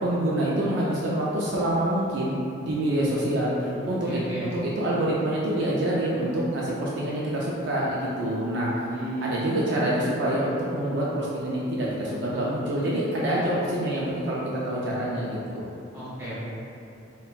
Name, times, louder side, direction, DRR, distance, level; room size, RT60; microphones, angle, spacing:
voice 1, 0.0-2.3 2.6-8.9 9.2-15.7, right 1 dB, 55° right, -6 dB, 0.4 m, -26 dB
voice 2, 3.5-4.5 8.9-9.5 15.9-16.3, right 1 dB, 15° right, -10 dB, 0.9 m, -35 dB
5.3 x 2.2 x 2.4 m, 2.8 s
head